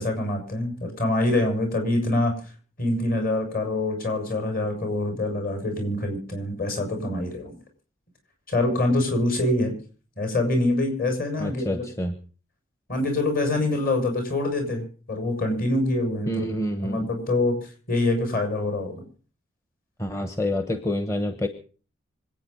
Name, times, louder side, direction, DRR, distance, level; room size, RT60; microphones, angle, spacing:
voice 1, 0.0-2.3 2.8-7.6 8.5-9.7 10.2-11.8 12.9-16.5 16.8-17.6 17.9-19.0, left 2 dB, 45° left, 4 dB, 6.5 m, -25 dB
voice 2, 11.4-12.1 16.3-17.1 20.0-21.5, left 1 dB, 15° left, 8 dB, 1.0 m, -27 dB
25.5 x 9.0 x 5.5 m, 0.40 s
head